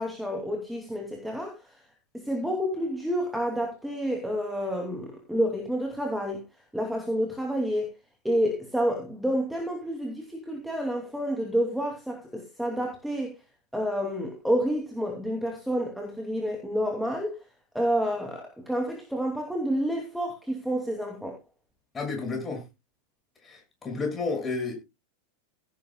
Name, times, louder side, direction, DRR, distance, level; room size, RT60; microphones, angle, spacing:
voice 1, 0.0-1.5 2.1-6.4 6.7-7.9 8.2-13.3 13.7-17.4 17.7-21.4, equal, ahead, 2.9 m, -29 dB
voice 2, 21.9-22.6 23.4-24.7, left 4 dB, 15° left, 6.6 m, -31 dB
17.0 x 10.0 x 2.3 m
figure-of-eight pair, 90°, 0 cm